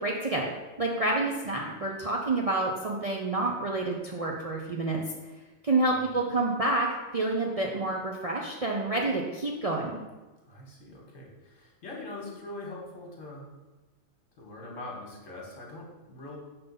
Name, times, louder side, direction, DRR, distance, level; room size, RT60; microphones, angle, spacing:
voice 1, 0.0-5.0 5.6-6.9 7.1-10.0, right 2 dB, 45° right, -2 dB, 0.5 m, -28 dB
voice 2, 5.9-6.2 10.5-13.5 14.4-16.4, left 2 dB, 70° left, -1 dB, 1.7 m, -43 dB
5.9 x 3.8 x 5.2 m, 1.1 s
omnidirectional pair, 1.3 m